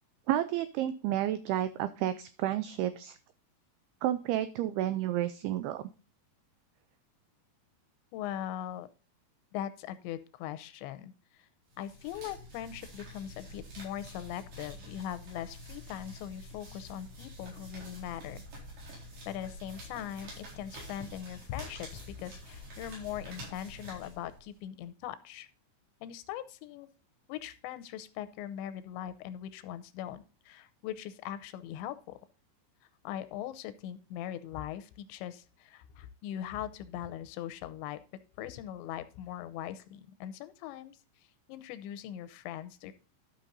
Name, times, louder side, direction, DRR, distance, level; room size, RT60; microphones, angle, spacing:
voice 1, 0.3-3.2 4.0-5.8, right 12 dB, 85° right, 12 dB, 2.2 m, -31 dB
voice 2, 8.1-8.9 9.5-11.5 11.8-18.4 19.3-25.5 26.0-26.9 27.3-32.2 33.0-38.0 38.4-41.0 41.5-42.9, left 11 dB, 90° left, 13 dB, 3.0 m, -40 dB
sound 1, 11.7-24.6, equal, 60° right, 6.0 m, -47 dB
12.5 x 5.9 x 4.0 m, 0.34 s
omnidirectional pair, 5.1 m